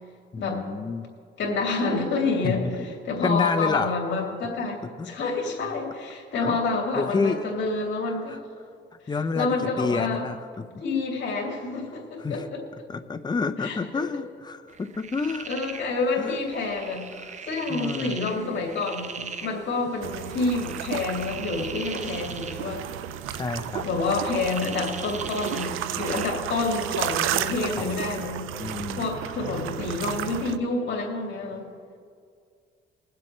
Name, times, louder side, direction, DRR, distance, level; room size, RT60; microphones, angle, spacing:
voice 1, 0.3-1.1 2.4-2.7 3.2-3.9 5.0-5.1 6.4-6.6 7.0-7.5 8.3-8.4 9.1-10.7 12.2-12.5 12.9-15.5 16.2-16.4 17.2-17.3 17.7-18.2 23.3-23.9 27.8-28.0 28.6-29.1, left 4 dB, 20° left, 9 dB, 0.6 m, -29 dB
voice 2, 1.4-2.6 3.0-4.8 5.0-8.4 9.3-10.3 10.8-12.6 13.6-13.8 15.5-17.1 17.5-22.9 23.3-23.4 23.8-28.5 29.0-31.6, left 3 dB, 65° left, -1 dB, 2.8 m, -28 dB
sound 1, 14.7-26.3, right 6 dB, 35° right, 0.7 m, -41 dB
sound 2, 20.0-30.6, right 11 dB, 90° right, 0.4 m, -33 dB
22.0 x 7.6 x 3.2 m, 2.2 s
cardioid pair, 90°, 20 cm